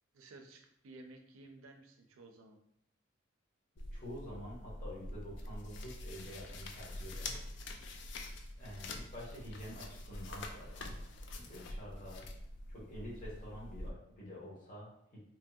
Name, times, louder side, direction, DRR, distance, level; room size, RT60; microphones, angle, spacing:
voice 1, 0.1-2.6 8.6-8.9, right 2 dB, 85° right, 4 dB, 0.4 m, -55 dB
sound 1, 3.8-13.9, left 2 dB, 60° left, 0.3 m, -46 dB
voice 2, 3.9-7.3 8.6-10.9 11.3-12.2 12.7-15.2, equal, 40° left, -6 dB, 1.0 m, -48 dB
2.9 x 2.7 x 2.3 m, 0.74 s
head